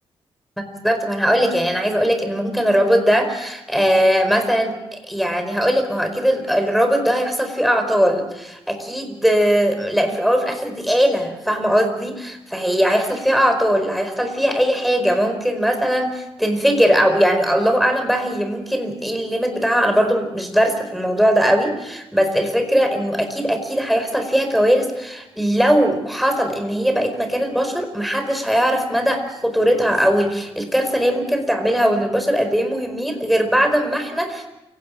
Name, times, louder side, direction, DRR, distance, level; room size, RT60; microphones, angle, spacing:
voice 1, 0.7-34.5, equal, ahead, 6 dB, 4.8 m, -19 dB
28.5 x 18.0 x 6.4 m, 0.95 s
cardioid pair, 90°, 10 cm